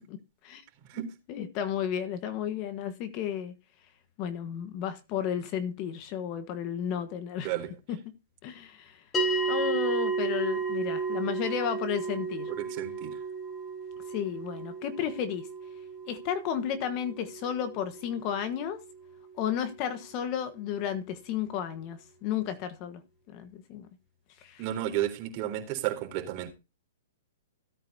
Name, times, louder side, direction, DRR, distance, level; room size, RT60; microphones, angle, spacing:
voice 1, 1.3-3.5 4.2-7.5 7.9-8.0 8.4-9.0 9.5-12.5 14.1-15.5 16.1-18.8 19.4-23.0 23.3-23.9 24.4-24.7, left 9 dB, 35° left, 1.3 m, -33 dB
sound 1, 9.1-19.7, right 4 dB, 15° left, 4.4 m, -33 dB
voice 2, 12.6-13.2 24.6-26.5, right 12 dB, 35° right, 3.7 m, -32 dB
16.5 x 9.0 x 2.8 m
hypercardioid pair, 150°, 0 cm